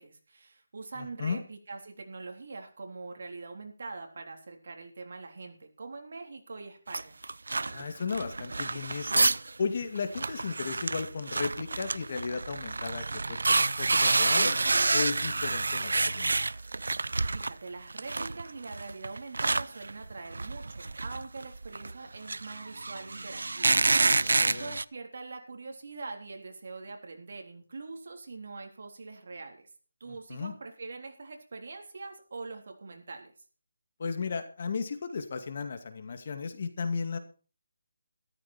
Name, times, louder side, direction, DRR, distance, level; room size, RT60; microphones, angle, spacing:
voice 1, 0.0-7.2 17.3-29.7 30.0-33.3, right 3 dB, 55° right, 4 dB, 3.6 m, -43 dB
voice 2, 1.0-1.4 7.7-9.3 9.6-14.6 14.9-16.3 24.2-24.7 30.1-30.5 34.0-37.2, left 5 dB, 45° left, 8 dB, 2.2 m, -35 dB
sound 1, 6.9-9.5 9.8-9.9 10.1-17.5 17.9-24.8, right 3 dB, 80° right, 0.5 m, -28 dB
13.5 x 13.5 x 4.4 m, 0.37 s
hypercardioid pair, 170°, 0 cm